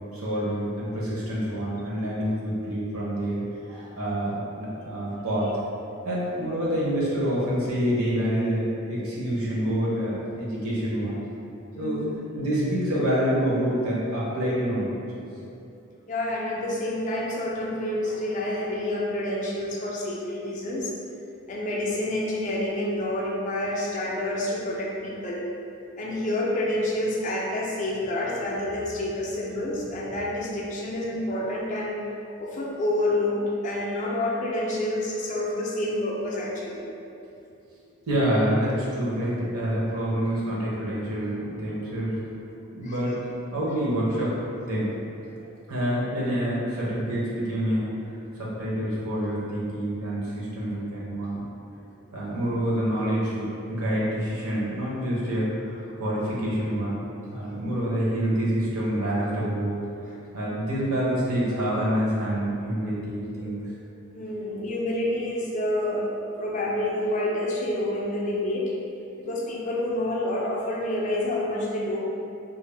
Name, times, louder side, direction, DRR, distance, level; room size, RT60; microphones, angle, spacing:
voice 1, 0.1-3.4 3.7-5.6 6.0-8.6 8.9-11.2 11.8-12.0 12.3-15.0 37.7-37.8 38.1-42.2 42.7-43.2 43.5-44.3 44.6-44.9 45.7-47.9 48.4-51.4 52.1-57.0 57.3-59.8 60.3-63.6, equal, 80° right, -6 dB, 0.7 m, -27 dB
voice 2, 11.7-12.4 16.1-20.9 21.5-25.5 26.0-32.0 32.4-36.9 42.8-43.0 57.5-57.9 63.4-63.5 64.1-68.7 69.2-72.0, left 1 dB, 35° left, -3 dB, 0.3 m, -28 dB
2.5 x 2.0 x 3.1 m, 2.7 s
head